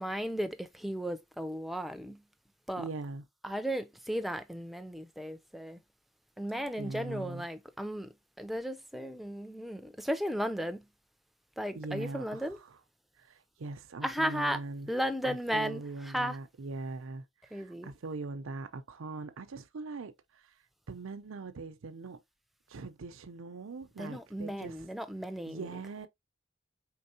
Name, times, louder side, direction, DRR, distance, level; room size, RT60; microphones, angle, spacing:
voice 1, 0.0-2.2 2.7-2.8 3.4-5.8 6.4-10.9 11.6-12.6 14.0-14.6 14.9-16.4 17.5-17.9 24.0-26.1, equal, ahead, 0.4 m, -35 dB
voice 2, 2.8-3.2 6.8-7.5 11.7-12.8 13.2-14.9 15.2-20.4 20.9-22.2 22.7-24.8 25.5-26.1, right 3 dB, 85° right, 0.6 m, -41 dB
4.5 x 3.6 x 2.6 m
head